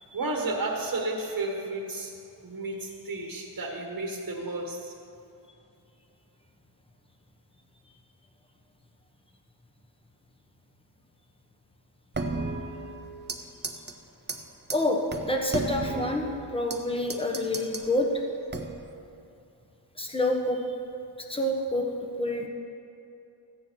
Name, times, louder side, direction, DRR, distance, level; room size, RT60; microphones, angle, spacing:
voice 1, 0.1-2.1 2.4-4.9, right 2 dB, 50° right, 0 dB, 1.5 m, -32 dB
sound 1, 12.1-13.4 13.6-13.9 14.3-14.4 14.7-14.8 15.1-16.8 17.1-17.9 18.5-18.9, right 3 dB, 25° right, 0.8 m, -33 dB
voice 2, 14.7-16.2 16.5-18.1 20.0-20.6 21.3-21.9 22.2-22.5, left 1 dB, 10° left, 1 dB, 1.3 m, -27 dB
14.5 x 9.6 x 4.6 m, 2.6 s
wide cardioid pair, 100°, 44 cm